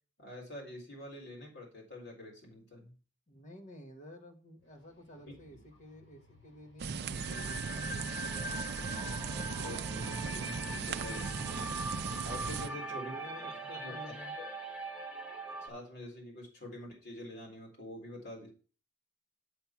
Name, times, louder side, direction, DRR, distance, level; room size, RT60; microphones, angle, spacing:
voice 1, 0.2-2.9 5.3-5.4 9.6-11.4 12.2-13.1 13.7-13.9 15.6-18.5, left 1 dB, 60° left, -1 dB, 3.7 m, -46 dB
voice 2, 3.3-9.0 11.4-11.7 12.9-14.3, equal, 40° left, 3 dB, 1.6 m, -52 dB
sound 1, 4.6-9.6, left 2 dB, 85° left, 5.0 m, -63 dB
sound 2, 6.8-12.7, right 5 dB, 55° right, 0.5 m, -38 dB
sound 3, 7.1-15.7, right 1 dB, 5° right, 1.8 m, -41 dB
7.8 x 5.7 x 5.9 m, 0.37 s
head